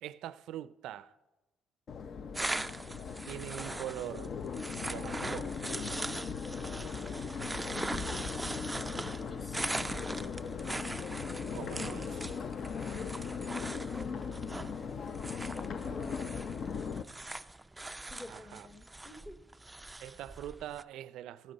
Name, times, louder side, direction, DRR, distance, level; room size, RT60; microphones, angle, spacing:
voice 1, 0.0-1.1 3.3-4.3 4.8-5.5 11.5-12.4 18.3-18.7 20.0-21.5, right 12 dB, 80° right, 0.4 m, -43 dB
Crowd, 1.9-17.0, left 6 dB, 50° left, 0.6 m, -39 dB
sound 1, 2.3-20.8, right 2 dB, 10° right, 0.3 m, -41 dB
voice 2, 7.7-8.3 9.3-9.7 15.5-16.8 18.1-19.4, left 2 dB, 20° left, 0.9 m, -50 dB
14.5 x 10.5 x 4.1 m
cardioid pair, 95°, 0 cm